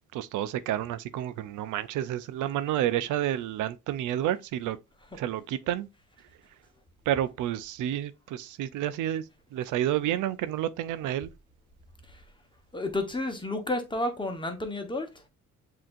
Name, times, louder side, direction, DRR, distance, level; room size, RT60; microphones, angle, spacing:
voice 1, 0.1-4.8 5.2-5.9 7.1-9.2 9.5-11.3, right 12 dB, 80° right, 0.5 m, -30 dB
voice 2, 12.7-15.1, left 2 dB, 15° left, 1.1 m, -31 dB
7.5 x 2.9 x 2.5 m
cardioid pair, 90°, 30 cm